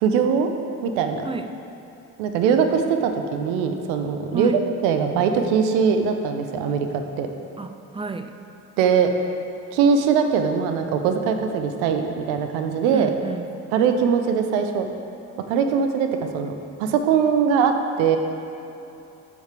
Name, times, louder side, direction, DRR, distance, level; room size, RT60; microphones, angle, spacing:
voice 1, 0.0-0.5 0.8-1.3 2.2-4.5 4.8-7.3 8.8-9.1 9.7-13.1 13.7-14.9 15.5-16.1 16.3-16.5 16.8-17.7 18.0-18.2, right 6 dB, 75° right, 6 dB, 0.7 m, -21 dB
voice 2, 1.2-1.6 4.3-4.6 7.6-8.4 12.9-13.5, right 4 dB, 15° right, 8 dB, 0.5 m, -31 dB
13.5 x 5.1 x 3.3 m, 3.0 s
hypercardioid pair, 55°, 41 cm